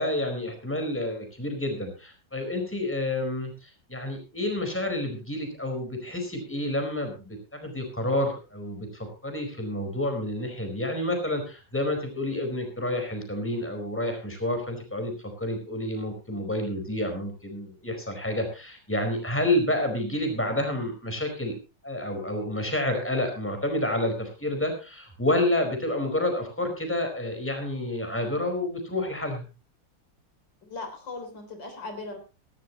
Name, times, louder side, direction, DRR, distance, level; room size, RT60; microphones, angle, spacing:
voice 1, 0.0-15.1 15.4-21.5 21.8-29.5, left 1 dB, 5° left, 5 dB, 4.6 m, -29 dB
voice 2, 30.6-32.2, left 3 dB, 75° left, 5 dB, 4.5 m, -38 dB
18.5 x 16.0 x 3.0 m, 0.32 s
omnidirectional pair, 2.0 m